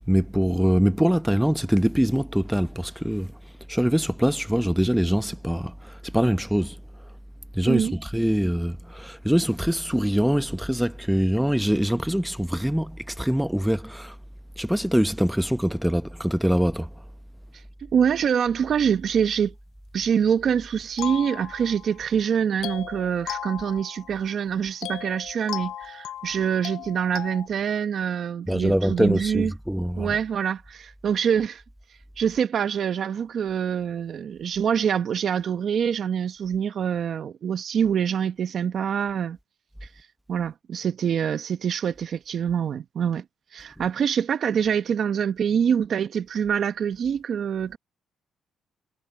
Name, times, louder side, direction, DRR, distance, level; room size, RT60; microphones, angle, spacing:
voice 1, 0.1-3.3 3.7-5.7 6.0-6.7 7.5-14.1 14.6-16.9 28.5-30.2, equal, ahead, 0.8 m, -23 dB
voice 2, 17.5-19.5 19.9-29.5 30.0-31.6 32.2-39.4 39.8-43.2 43.5-47.8, right 8 dB, 55° right, 0.9 m, -25 dB
sound 1, 21.0-22.0 22.6-24.3 24.8-27.5, left 12 dB, 80° left, 0.6 m, -36 dB
cardioid pair, 105°, 0 cm